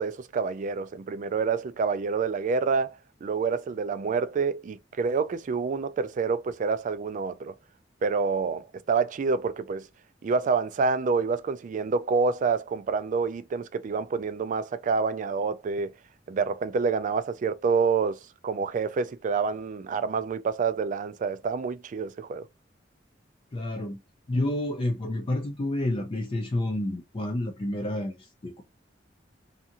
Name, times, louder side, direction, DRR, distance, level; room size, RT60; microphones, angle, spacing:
voice 1, 0.0-7.5 8.0-9.8 10.2-15.9 16.3-22.5, right 5 dB, 45° right, 0.3 m, -27 dB
voice 2, 23.5-24.0 24.3-28.6, left 1 dB, 30° left, 0.4 m, -29 dB
2.5 x 2.4 x 2.8 m
head